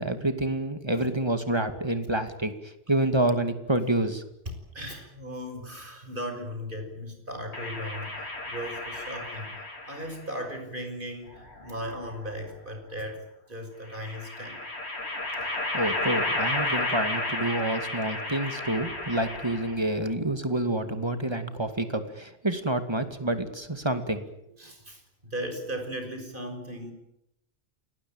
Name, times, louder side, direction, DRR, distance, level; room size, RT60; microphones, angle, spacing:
voice 1, 0.0-2.5 2.9-4.2 15.7-24.2, right 1 dB, 25° right, 8 dB, 2.4 m, -28 dB
voice 2, 4.7-9.5 9.8-13.2 13.5-14.6 24.6-26.9, equal, 50° right, 5 dB, 6.4 m, -37 dB
sound 1, 7.5-10.2 11.3-12.3 13.9-19.9, left 2 dB, 80° left, 3.8 m, -32 dB
28.5 x 19.5 x 8.9 m, 0.82 s
omnidirectional pair, 1.1 m